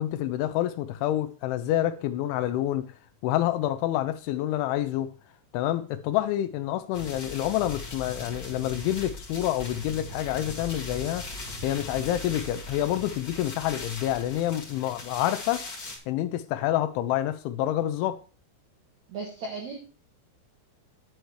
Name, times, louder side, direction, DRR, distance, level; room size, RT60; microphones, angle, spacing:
voice 1, 0.0-2.9 3.2-5.1 5.5-11.2 11.6-15.6 16.1-18.2, left 13 dB, 80° left, 3.0 m, -28 dB
sound 1, 6.9-16.0, left 2 dB, 50° left, 1.1 m, -39 dB
voice 2, 19.1-19.8, right 4 dB, 70° right, 1.7 m, -35 dB
9.9 x 7.8 x 3.1 m
omnidirectional pair, 5.6 m